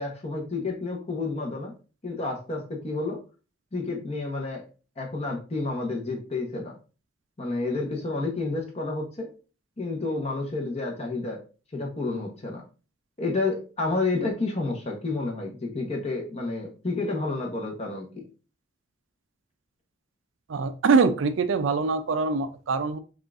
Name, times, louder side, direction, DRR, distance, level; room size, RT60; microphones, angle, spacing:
voice 1, 0.0-1.7 2.0-3.2 3.7-4.6 5.0-6.7 7.4-9.3 9.8-11.4 11.7-12.6 13.2-18.2, left 3 dB, 35° left, 1 dB, 1.0 m, -30 dB
voice 2, 20.5-23.0, right 4 dB, 70° right, 10 dB, 0.4 m, -23 dB
5.2 x 2.5 x 2.5 m, 0.35 s
head